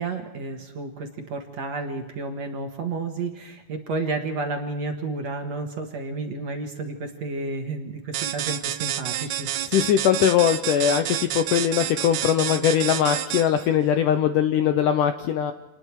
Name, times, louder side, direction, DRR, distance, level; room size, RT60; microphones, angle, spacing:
voice 1, 0.0-9.5, right 3 dB, 55° right, 4 dB, 2.3 m, -31 dB
sound 1, 8.1-13.7, right 12 dB, 70° right, 2.0 m, -29 dB
voice 2, 9.7-15.5, left 9 dB, 75° left, 9 dB, 1.9 m, -21 dB
28.0 x 20.0 x 4.8 m, 1.1 s
omnidirectional pair, 4.5 m